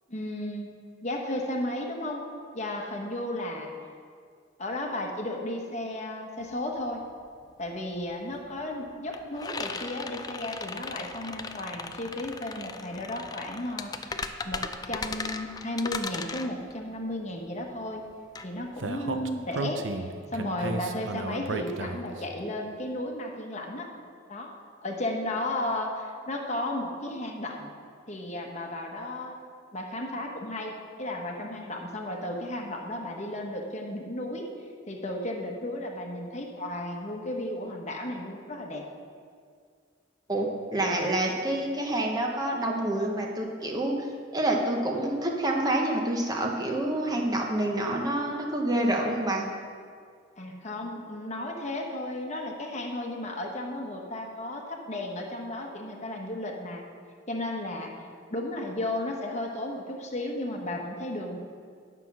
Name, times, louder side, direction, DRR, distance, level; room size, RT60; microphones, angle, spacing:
voice 1, 0.1-0.7 1.0-2.2 2.5-3.7 4.6-7.0 7.6-18.0 18.4-23.9 24.3-24.5 24.8-27.7 28.1-29.4 29.7-34.4 34.9-38.8 50.4-56.8 57.3-61.4, left 1 dB, 40° left, 1 dB, 1.1 m, -34 dB
sound 1, 6.4-6.5 6.8-19.5, left 4 dB, 20° left, 0.4 m, -38 dB
Speech, 18.8-22.2, right 3 dB, 80° right, 0.6 m, -33 dB
voice 2, 40.3-44.1 44.3-49.5, right 1 dB, 20° right, 0 dB, 0.9 m, -27 dB
9.5 x 5.9 x 6.1 m, 2.1 s
head